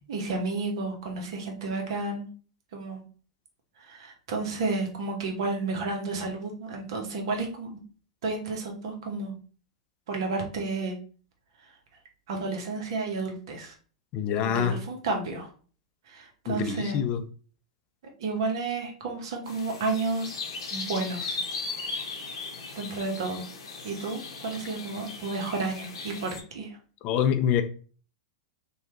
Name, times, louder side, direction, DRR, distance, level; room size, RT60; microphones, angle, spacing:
voice 1, 0.1-2.3 2.7-3.0 3.8-7.8 8.2-9.4 10.1-11.0 12.3-13.7 14.3-15.5 16.1-17.0 18.2-20.4 20.7-21.4 22.7-23.4 23.8-26.8, right 3 dB, 60° right, 0.9 m, -31 dB
voice 2, 14.1-14.8 16.5-17.2 27.0-27.6, left 8 dB, 40° left, 0.4 m, -25 dB
sound 1, 19.5-26.4, left 4 dB, 65° left, 0.8 m, -37 dB
3.0 x 2.3 x 3.0 m
figure-of-eight pair, 95°, 3 cm